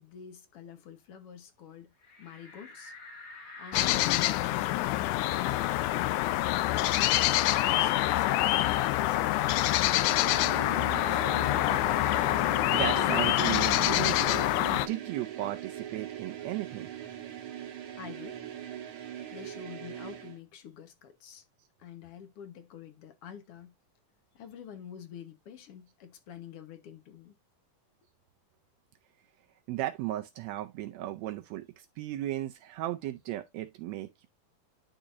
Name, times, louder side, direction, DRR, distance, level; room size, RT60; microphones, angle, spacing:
voice 1, 0.0-1.9 2.2-2.9 3.6-6.8 7.7-8.7 9.0-11.3 18.0-18.4 19.3-21.4 21.8-23.7 24.3-27.4, left 8 dB, 60° left, 1.6 m, -48 dB
sound 1, 2.0-7.2 7.5-7.6 8.0-9.6, left 2 dB, 35° left, 2.4 m, -51 dB
sound 2, 3.7-14.9, left 15 dB, 80° left, 2.0 m, -26 dB
sound 3, 10.1-20.4, right 10 dB, 60° right, 1.4 m, -41 dB
voice 2, 12.1-16.9 29.7-34.3, right 14 dB, 85° right, 1.5 m, -36 dB
11.0 x 3.8 x 2.5 m
omnidirectional pair, 3.6 m